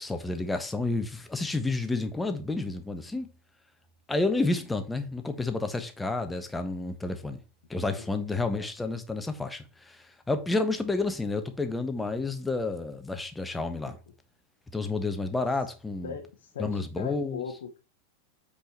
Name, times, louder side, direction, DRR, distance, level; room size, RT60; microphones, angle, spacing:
voice 1, 0.0-3.3 4.1-7.4 7.7-14.0 14.7-16.1 16.6-17.4, left 3 dB, 10° left, 1.3 m, -30 dB
voice 2, 8.0-8.5 16.0-17.8, left 7 dB, 60° left, 1.2 m, -39 dB
8.0 x 5.1 x 4.3 m
figure-of-eight pair, 90°, 0 cm